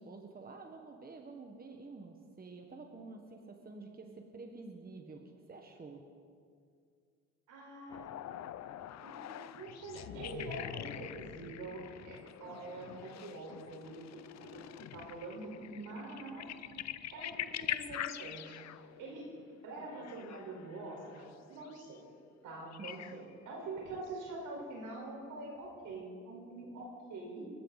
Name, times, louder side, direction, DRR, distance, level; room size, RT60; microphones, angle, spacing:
voice 1, 0.0-5.2 5.5-6.0 22.8-23.0, right 3 dB, 30° right, 3 dB, 1.5 m, -49 dB
voice 2, 7.5-8.1 9.0-14.6 14.9-16.5 17.1-18.7 19.0-19.3 19.6-22.0 22.4-27.5, right 2 dB, 80° right, -1 dB, 4.6 m, -45 dB
sound 1, 7.9-21.2 21.6-22.0 22.7-23.3 23.9-24.6 25.9-26.0, left 11 dB, 60° left, 0.6 m, -45 dB
23.5 x 12.5 x 4.1 m, 2.2 s
cardioid pair, 90°, 30 cm